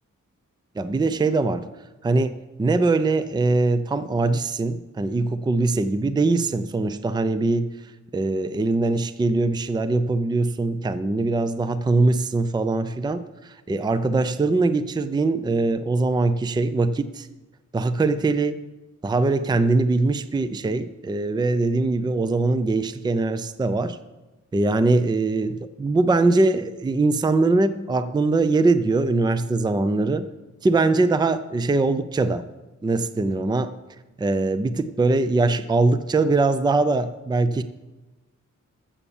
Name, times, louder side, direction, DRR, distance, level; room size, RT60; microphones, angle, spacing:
voice 1, 0.8-1.7 2.0-7.7 8.1-17.3 17.7-18.6 19.0-24.0 24.5-30.3 30.6-32.4 32.8-33.7 34.2-37.6, right 3 dB, 15° right, 13 dB, 0.4 m, -22 dB
14.0 x 7.2 x 7.1 m, 1.1 s
wide cardioid pair, 160°, 30 cm